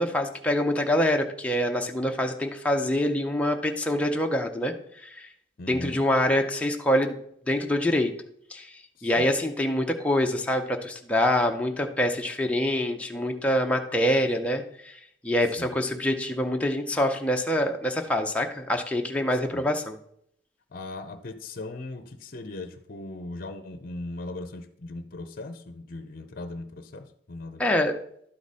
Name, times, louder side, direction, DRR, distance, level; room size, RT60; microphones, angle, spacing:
voice 1, 0.0-5.3 5.7-7.2 7.5-8.1 8.5-20.0 27.6-28.0, left 1 dB, 5° left, 2 dB, 0.6 m, -25 dB
voice 2, 5.6-6.0 9.0-9.3 15.6-15.8 19.5-19.7 20.7-27.7, left 2 dB, 50° left, 10 dB, 0.6 m, -39 dB
11.5 x 4.9 x 4.2 m, 0.69 s
head